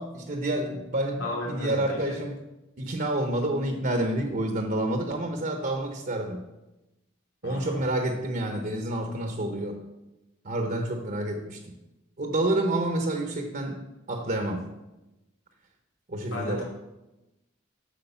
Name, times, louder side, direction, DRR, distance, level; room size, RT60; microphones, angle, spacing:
voice 1, 0.0-2.4 2.8-6.4 7.4-9.8 10.4-11.7 12.2-13.8 14.1-14.7 16.1-16.6, right 1 dB, 45° right, 5 dB, 0.9 m, -28 dB
voice 2, 1.2-2.2 7.4-7.9 16.3-16.6, left 1 dB, 75° left, -3 dB, 2.5 m, -34 dB
8.5 x 6.2 x 6.8 m, 0.99 s
head